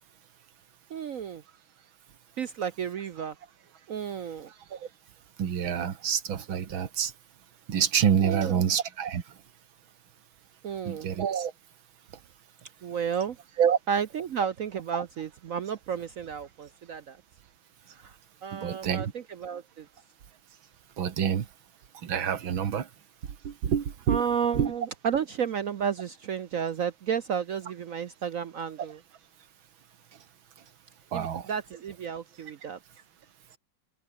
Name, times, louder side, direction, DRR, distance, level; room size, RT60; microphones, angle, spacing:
voice 1, 0.9-1.4 2.4-3.3 3.9-4.5 8.2-8.6 10.6-11.1 12.8-13.4 13.9-17.2 18.0-18.1 18.4-19.9 24.1-29.0 31.1-32.8, right 7 dB, 60° right, 0.9 m, -32 dB
voice 2, 5.4-7.1 7.7-9.2 10.9-11.5 13.6-13.8 18.5-19.1 21.0-21.5 22.0-22.9 23.4-24.2 24.6-24.7 31.1-31.5, right 8 dB, 90° right, 2.5 m, -27 dB
omnidirectional pair, 2.1 m